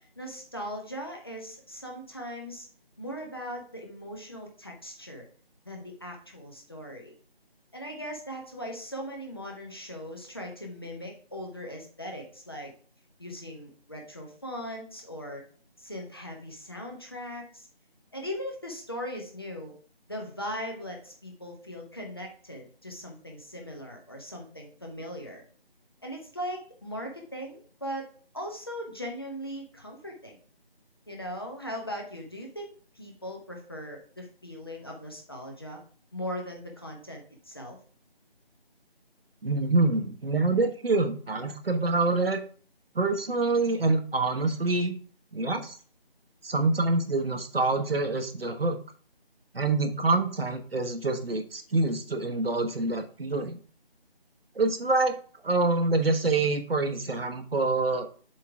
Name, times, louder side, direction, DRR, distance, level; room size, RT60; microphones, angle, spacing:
voice 1, 0.0-2.7 3.0-5.2 5.6-7.1 7.7-12.7 13.2-15.5 15.8-17.7 18.1-19.8 20.1-25.4 26.0-30.4 31.1-35.8 36.1-37.8, equal, 25° left, 0 dB, 1.0 m, -39 dB
voice 2, 39.4-42.4 42.9-45.0 45.3-45.8 46.4-48.8 49.5-53.6 54.5-55.2 55.4-58.1, right 3 dB, 70° right, 7 dB, 1.2 m, -26 dB
7.4 x 3.8 x 4.7 m, 0.43 s
figure-of-eight pair, 175°, 30 cm